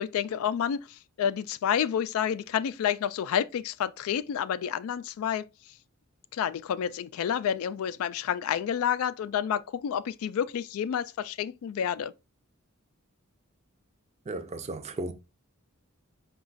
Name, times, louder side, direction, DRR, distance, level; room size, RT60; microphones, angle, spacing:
voice 1, 0.0-5.5 6.3-12.1, left 8 dB, 75° left, 0.3 m, -29 dB
voice 2, 14.3-15.1, right 2 dB, 30° right, 0.4 m, -35 dB
5.0 x 2.3 x 3.9 m
head